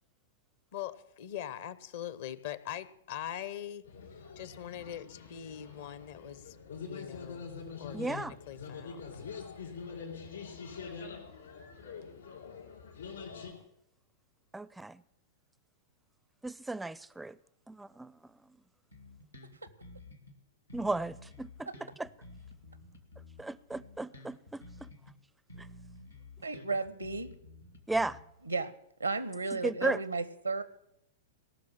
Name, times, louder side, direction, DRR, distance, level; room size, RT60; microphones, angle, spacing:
voice 1, 0.7-3.8 4.4-6.6 6.8-7.5 7.8-9.2, left 11 dB, 55° left, 0.8 m, -42 dB
sound 1, 3.8-13.5, left 5 dB, 70° left, 3.7 m, -45 dB
voice 2, 7.9-8.3 14.5-15.0 16.4-17.4 17.7-18.2 20.7-21.7 22.0-22.1 23.4-24.9 27.9-28.2 29.6-30.0, right 2 dB, 5° right, 0.4 m, -35 dB
Bass guitar, 18.9-20.4 20.7-25.2 25.5-28.5, left 2 dB, 90° left, 1.9 m, -52 dB
voice 3, 26.4-27.3 28.4-28.7 29.0-30.6, right 3 dB, 85° right, 0.9 m, -34 dB
18.0 x 6.2 x 8.8 m
figure-of-eight pair, 100°, 0 cm